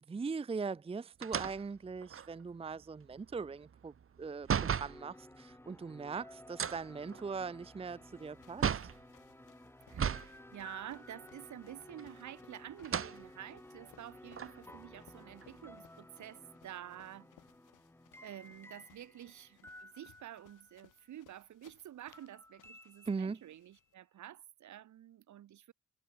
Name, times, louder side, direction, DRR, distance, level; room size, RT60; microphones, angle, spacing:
voice 1, 0.0-3.9 4.2-4.5 4.8-8.8 23.1-23.4, right 5 dB, 20° right, 0.6 m, -40 dB
sound 1, 1.2-5.0 6.5-9.0 9.9-10.4 10.7-10.8 11.9-12.4 12.8-13.2 13.8-13.9 14.3-15.7, right 7 dB, 45° right, 2.2 m, -36 dB
sound 2, 4.5-21.1 22.1-23.8, left 1 dB, 10° left, 3.9 m, -56 dB
sound 3, 7.9-23.9, left 15 dB, 85° left, 6.8 m, -67 dB
voice 2, 9.8-17.3 18.2-25.7, right 12 dB, 70° right, 2.9 m, -50 dB
cardioid pair, 90°, 30 cm